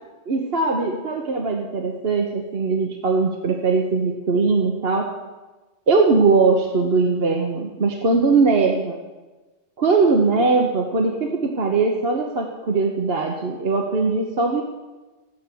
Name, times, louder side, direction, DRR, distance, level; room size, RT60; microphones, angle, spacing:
voice 1, 0.3-5.1 5.9-9.0 9.8-14.6, right 4 dB, 60° right, 2 dB, 1.4 m, -20 dB
14.5 x 10.0 x 6.9 m, 1.2 s
omnidirectional pair, 1.2 m